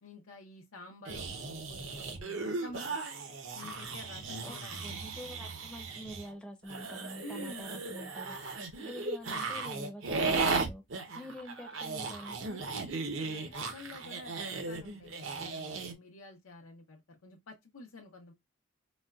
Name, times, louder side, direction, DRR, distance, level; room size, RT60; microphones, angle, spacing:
voice 1, 0.0-3.0 3.5-5.0 7.2-7.8 12.5-18.3, left 2 dB, 80° left, 0.6 m, -50 dB
sound 1, 1.0-6.3 6.7-15.9, right 3 dB, 70° right, 0.7 m, -36 dB
voice 2, 4.4-10.8 11.1-12.4, equal, 5° left, 0.5 m, -46 dB
4.1 x 2.1 x 2.3 m
head